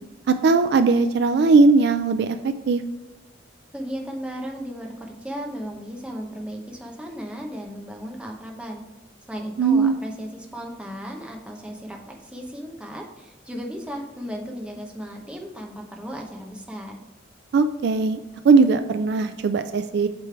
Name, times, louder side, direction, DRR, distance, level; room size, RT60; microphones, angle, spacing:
voice 1, 0.3-2.8 9.6-10.0 17.5-18.2 18.4-20.1, right 4 dB, 60° right, 9 dB, 0.3 m, -19 dB
voice 2, 3.7-8.8 9.3-17.0, equal, 5° right, 1 dB, 0.8 m, -35 dB
8.2 x 3.3 x 4.5 m, 1.0 s
head